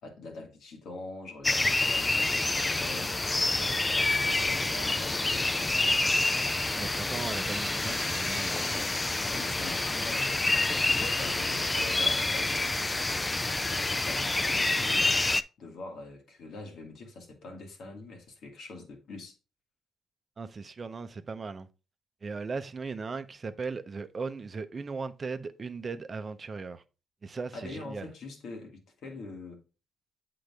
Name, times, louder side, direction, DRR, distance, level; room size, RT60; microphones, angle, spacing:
voice 1, 0.0-6.2 9.3-12.6 13.4-15.1 15.6-19.4 27.5-29.6, left 2 dB, 70° left, 2.0 m, -44 dB
sound 1, 1.4-15.4, left 2 dB, 20° left, 0.4 m, -28 dB
voice 2, 6.8-8.7 20.4-21.7 22.2-26.8 27.2-28.1, right 4 dB, 35° right, 0.7 m, -37 dB
8.1 x 3.8 x 3.5 m
cardioid pair, 90°, 0 cm